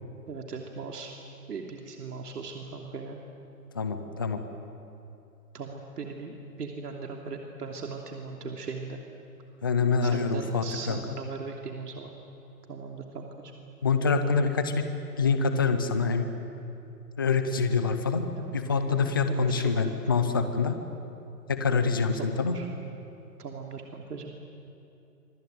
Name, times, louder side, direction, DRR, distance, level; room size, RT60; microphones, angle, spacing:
voice 1, 0.3-1.1 1.5-3.2 5.5-9.0 10.0-12.1 12.7-13.5 18.4-18.6 18.9-20.0 22.2-22.7 23.4-24.4, right 4 dB, 75° right, 2 dB, 3.1 m, -39 dB
voice 2, 3.7-4.4 9.6-11.0 13.8-14.9 15.2-16.3 17.2-18.2 18.5-20.7 21.5-22.6, left 4 dB, 15° left, 8 dB, 0.5 m, -25 dB
25.5 x 23.0 x 9.3 m, 2.8 s
hypercardioid pair, 160°, 48 cm